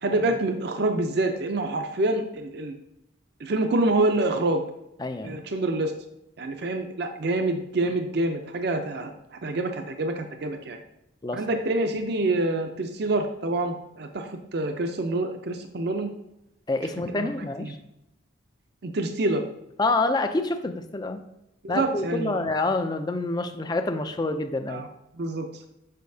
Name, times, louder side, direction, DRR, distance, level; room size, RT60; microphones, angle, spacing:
voice 1, 0.0-2.7 3.4-4.6 5.2-5.9 6.4-10.8 11.3-16.1 17.1-17.3 17.6-17.7 18.8-19.4 21.6-22.4 24.7-24.9 25.1-25.6, right 2 dB, 55° right, 5 dB, 0.5 m, -26 dB
voice 2, 5.0-5.4 11.2-11.6 16.7-17.8 19.8-21.2 21.7-24.8, left 2 dB, 20° left, 8 dB, 0.3 m, -27 dB
6.5 x 5.6 x 2.7 m, 0.86 s
head